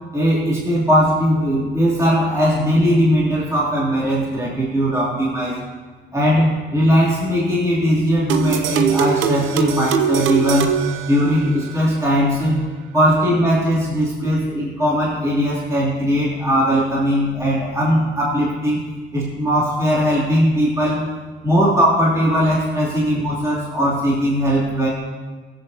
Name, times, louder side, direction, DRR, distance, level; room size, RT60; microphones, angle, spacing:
voice 1, 0.1-5.6 6.1-10.7 11.1-12.6 12.9-18.8 19.1-21.0 21.4-24.9, equal, 15° right, -8 dB, 3.1 m, -19 dB
sound 1, 8.3-11.8, right 8 dB, 90° right, 0.7 m, -22 dB
14.5 x 8.3 x 2.9 m, 1.4 s
cardioid pair, 90°, 20 cm